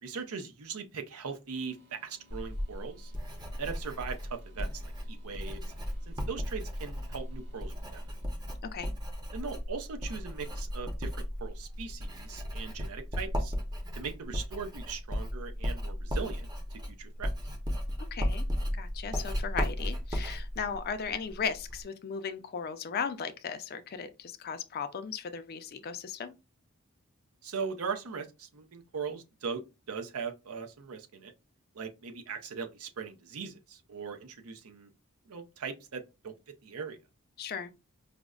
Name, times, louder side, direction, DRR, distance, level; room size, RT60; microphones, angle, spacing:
voice 1, 0.0-3.1 3.6-5.6 6.1-8.0 9.3-11.1 11.4-13.5 13.9-16.5 17.0-17.3 27.4-29.6 29.9-31.3 31.7-34.9 35.3-36.3 36.6-37.0, right 5 dB, 85° right, 0.6 m, -39 dB
sound 1, 1.5-8.3, right 1 dB, 55° right, 0.8 m, -63 dB
Writing, 2.3-21.8, equal, 20° right, 0.6 m, -35 dB
voice 2, 8.6-8.9 18.1-18.5 18.8-26.3 37.4-37.7, left 6 dB, 45° left, 0.4 m, -36 dB
4.9 x 2.1 x 2.3 m
head